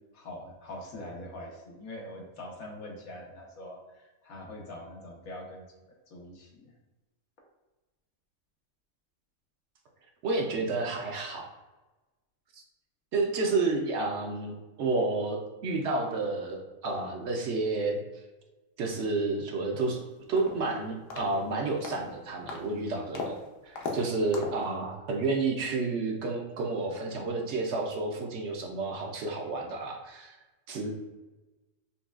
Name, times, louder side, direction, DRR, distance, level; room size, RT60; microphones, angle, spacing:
voice 1, 0.1-3.8 4.2-5.6 6.1-6.5, left 1 dB, 90° left, -1 dB, 1.3 m, -43 dB
voice 2, 10.2-11.5 13.1-18.0 18.8-20.0 20.3-23.4 23.6-30.4 30.7-30.9, right 3 dB, 65° right, 1 dB, 0.8 m, -30 dB
sound 1, 19.8-19.9 20.4-20.7 21.1-21.4 21.8-22.1 22.5-22.7 23.1-23.4 23.8-24.0 24.3-24.6, left 3 dB, 70° left, 1.0 m, -37 dB
5.3 x 2.2 x 2.3 m, 1.1 s
omnidirectional pair, 1.4 m